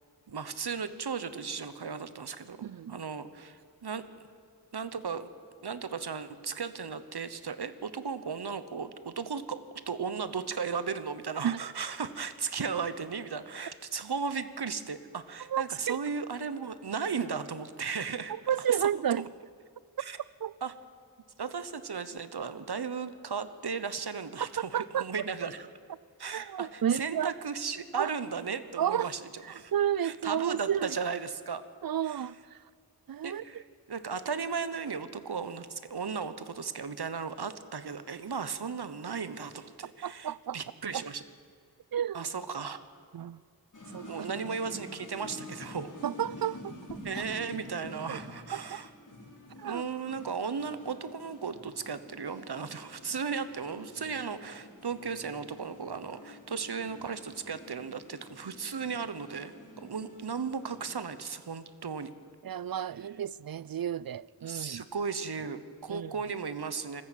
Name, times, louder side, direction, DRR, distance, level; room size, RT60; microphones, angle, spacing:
voice 1, 0.3-4.0 4.7-5.3 5.6-18.8 20.0-20.2 20.6-20.7 21.4-25.7 26.2-29.7 30.0-31.6 32.0-32.3 33.2-33.6 33.9-41.2 42.1-42.8 44.1-45.9 47.0-48.9 49.6-59.5 59.8-62.1 64.5-67.0, right 5 dB, 80° right, 1.1 m, -36 dB
voice 2, 2.6-3.0 11.4-11.6 15.5-16.0 18.5-19.3 20.4-20.5 24.6-25.1 26.3-27.3 28.0-28.1 28.8-29.1 29.7-31.0 31.8-32.6 33.1-33.4 40.0-40.6 40.9-41.0 41.9-42.3 43.1-43.4 43.9-44.3 46.0-47.2 48.1-48.2 48.5-48.8 49.6-49.8 62.4-64.8 65.9-66.1, right 9 dB, 65° right, 0.5 m, -31 dB
sound 1, 43.7-60.9, left 1 dB, 50° left, 4.5 m, -48 dB
20.5 x 14.0 x 9.1 m
wide cardioid pair, 50°, 38 cm